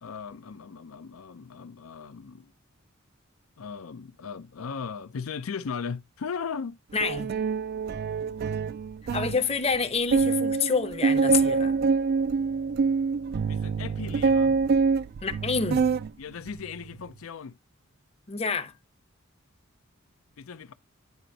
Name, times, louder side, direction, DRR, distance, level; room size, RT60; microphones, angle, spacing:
voice 1, 0.0-2.5 3.6-6.8 13.5-14.6 16.2-17.5 20.4-20.7, left 6 dB, 80° left, 0.5 m, -37 dB
voice 2, 6.9-7.3 9.1-11.7 15.2-15.8 18.3-18.7, left 5 dB, 30° left, 0.7 m, -27 dB
sound 1, 7.0-9.4 9.7-9.8 10.1-16.1 16.5-16.9, right 4 dB, 50° right, 0.3 m, -25 dB
9.4 x 5.0 x 2.7 m
head